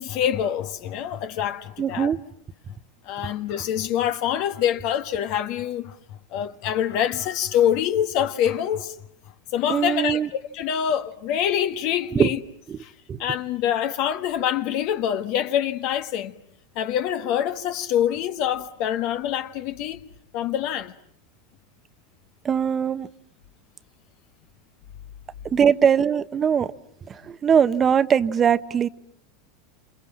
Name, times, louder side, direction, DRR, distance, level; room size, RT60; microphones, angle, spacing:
voice 1, 0.0-2.1 3.0-6.0 6.3-9.0 9.5-12.4 12.8-12.9 13.2-16.3 16.7-20.0 20.3-20.9, left 10 dB, 60° left, 1.5 m, -25 dB
voice 2, 1.8-2.2 9.7-10.3 12.1-12.3 12.7-12.8 13.1-13.2 22.4-23.1 25.4-26.7 27.1-28.9, right 7 dB, 30° right, 1.1 m, -21 dB
28.0 x 28.0 x 7.4 m
hypercardioid pair, 105°, 0 cm